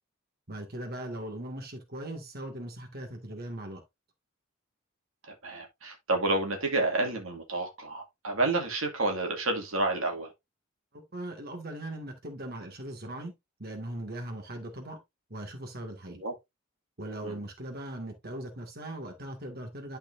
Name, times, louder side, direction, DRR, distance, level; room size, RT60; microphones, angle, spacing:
voice 1, 0.5-3.8 10.9-13.3 13.6-15.0 15.3-16.2 17.0-20.0, right 1 dB, 50° right, 2.0 m, -39 dB
voice 2, 5.3-10.3 16.2-16.3 17.2-17.4, right 2 dB, 85° right, 2.2 m, -30 dB
11.5 x 4.5 x 2.6 m
head